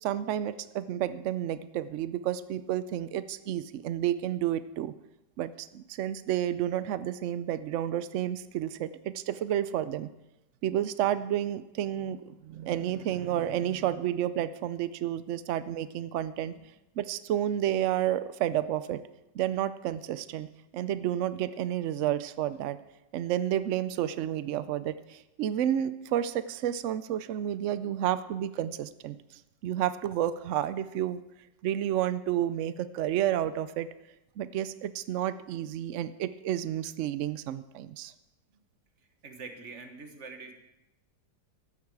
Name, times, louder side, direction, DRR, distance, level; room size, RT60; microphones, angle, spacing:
voice 1, 0.0-4.9 5.4-10.1 10.6-16.5 17.0-19.0 19.3-20.5 20.7-22.8 23.1-31.2 31.6-33.9 34.4-38.1, right 11 dB, 85° right, 14 dB, 0.6 m, -31 dB
voice 2, 39.2-40.5, right 4 dB, 45° right, 5 dB, 1.6 m, -44 dB
14.5 x 11.5 x 4.7 m, 0.94 s
omnidirectional pair, 1.9 m